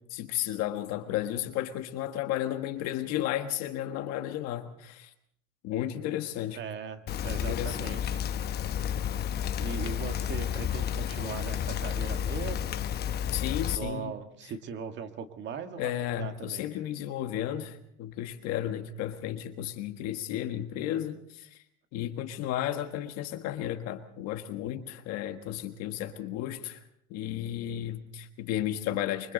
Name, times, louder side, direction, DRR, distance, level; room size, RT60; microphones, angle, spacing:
voice 1, 0.0-5.1 5.6-6.6 7.2-8.2 13.3-14.1 15.8-21.6 21.9-29.3, left 12 dB, 60° left, 7 dB, 1.5 m, -33 dB
voice 2, 6.5-8.2 9.6-12.8 13.6-16.7, right 6 dB, 40° right, 8 dB, 1.7 m, -39 dB
Rain, 7.1-13.7, left 9 dB, 35° left, 0.9 m, -31 dB
28.0 x 24.0 x 4.0 m, 0.67 s
cardioid pair, 165°, 30 cm